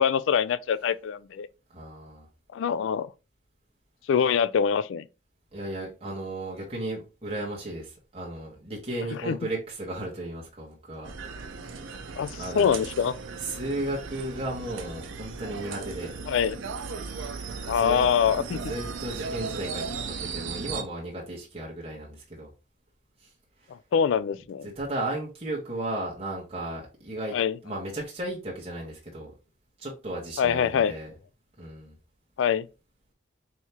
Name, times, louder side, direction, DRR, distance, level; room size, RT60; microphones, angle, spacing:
voice 1, 0.0-1.5 2.5-3.1 4.1-5.1 9.1-9.4 12.2-13.1 16.3-16.6 17.7-18.6 23.9-24.7 27.3-27.6 30.4-30.9 32.4-32.7, left 7 dB, 75° left, 0.3 m, -24 dB
voice 2, 1.7-2.3 5.5-11.1 11.6-11.7 12.4-12.8 13.4-16.2 17.6-18.1 18.5-22.5 23.2-23.3 24.6-27.3 27.6-29.3 29.8-31.1 31.6-31.9, right 1 dB, 30° right, 1.2 m, -35 dB
sound 1, 11.0-20.8, right 4 dB, 80° right, 0.6 m, -37 dB
4.5 x 3.4 x 2.9 m
head